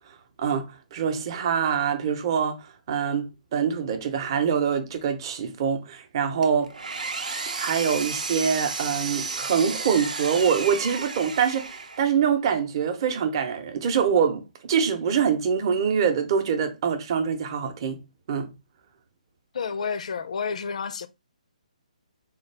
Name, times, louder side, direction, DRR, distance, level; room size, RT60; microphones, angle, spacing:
voice 1, 0.4-2.6 2.9-6.7 7.6-18.0 18.3-18.5, right 7 dB, 35° right, 0.7 m, -24 dB
Engine, 6.4-12.1, right 4 dB, 85° right, 0.7 m, -32 dB
voice 2, 19.5-21.1, left 6 dB, 60° left, 0.5 m, -30 dB
3.8 x 2.4 x 3.3 m
hypercardioid pair, 155°, 4 cm